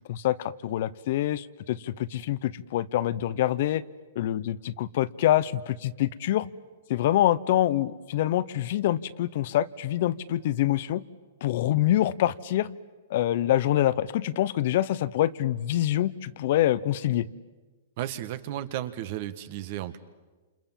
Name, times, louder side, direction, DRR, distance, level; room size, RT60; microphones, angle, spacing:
voice 1, 0.0-3.8 4.1-6.5 6.9-11.0 11.4-12.7 13.1-17.3, left 13 dB, 55° left, 16 dB, 0.9 m, -25 dB
voice 2, 18.0-20.0, right 12 dB, 50° right, 12 dB, 1.6 m, -34 dB
28.5 x 28.0 x 7.5 m, 1.3 s
hypercardioid pair, 145°, 0 cm